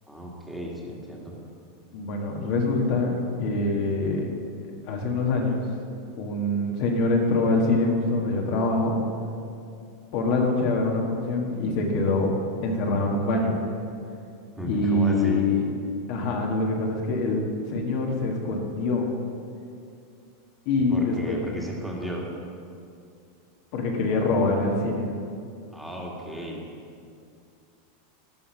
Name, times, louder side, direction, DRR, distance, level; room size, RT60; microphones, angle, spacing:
voice 1, 0.1-1.3 14.6-15.5 20.9-22.2 25.7-26.6, equal, ahead, -3 dB, 1.9 m, -34 dB
voice 2, 1.9-4.3 4.8-5.7 6.2-8.9 10.1-12.3 12.6-13.6 14.6-15.7 16.1-17.4 17.7-19.1 20.6-21.4 23.7-25.1, left 2 dB, 60° left, 0 dB, 1.6 m, -24 dB
11.5 x 5.7 x 6.4 m, 2.4 s
hypercardioid pair, 115°, 0 cm